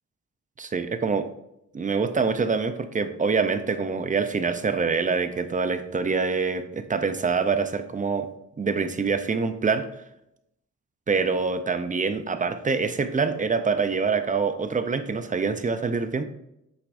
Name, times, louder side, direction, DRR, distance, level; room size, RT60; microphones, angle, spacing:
voice 1, 0.6-1.3 1.7-8.3 8.6-9.8 11.1-16.2, right 4 dB, 25° right, 9 dB, 0.5 m, -25 dB
8.2 x 6.1 x 2.6 m, 0.82 s
wide cardioid pair, 140°, 32 cm